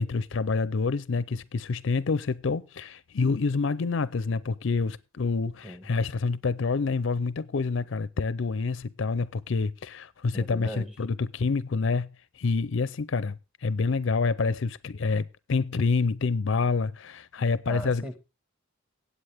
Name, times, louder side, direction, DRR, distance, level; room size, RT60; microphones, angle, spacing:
voice 1, 0.0-12.1 12.4-18.0, left 4 dB, 60° left, 0.5 m, -27 dB
voice 2, 10.3-10.9 17.6-18.2, equal, 5° right, 1.5 m, -37 dB
18.0 x 8.3 x 3.4 m
head